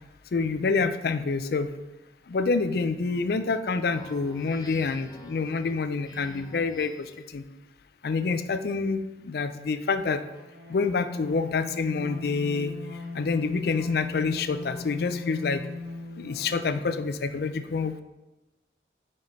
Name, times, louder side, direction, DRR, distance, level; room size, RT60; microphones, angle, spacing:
voice 1, 0.3-1.7 2.3-6.9 7.3-7.4 8.0-10.2 10.7-12.7 13.1-15.6 16.2-18.0, left 4 dB, 55° left, 11 dB, 0.4 m, -27 dB
Speech synthesizer, 3.9-7.2, left 1 dB, 20° left, 1.0 m, -47 dB
sound 1, 10.2-17.0, left 4 dB, 60° right, 1.3 m, -39 dB
5.0 x 4.2 x 5.2 m, 1.0 s
head